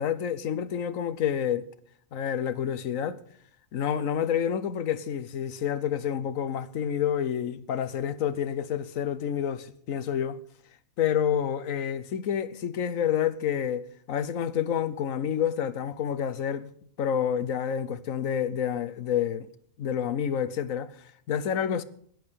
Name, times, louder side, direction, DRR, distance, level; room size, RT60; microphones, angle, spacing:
voice 1, 0.0-1.6 2.1-3.2 3.7-10.4 11.0-16.7 17.0-19.5 19.8-21.8, left 9 dB, 80° left, 1.3 m, -28 dB
15.5 x 10.5 x 6.7 m
omnidirectional pair, 1.4 m